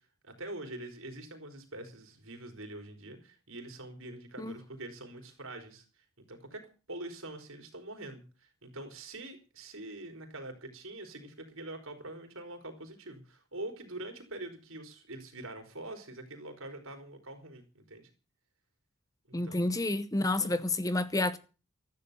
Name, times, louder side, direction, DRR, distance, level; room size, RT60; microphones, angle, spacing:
voice 1, 0.2-5.8 6.3-6.6 6.9-8.2 8.6-18.1 19.3-19.7 20.4-20.6, right 2 dB, 75° right, 4.1 m, -44 dB
voice 2, 19.3-21.4, left 2 dB, 15° left, 0.8 m, -29 dB
13.5 x 11.0 x 6.7 m
head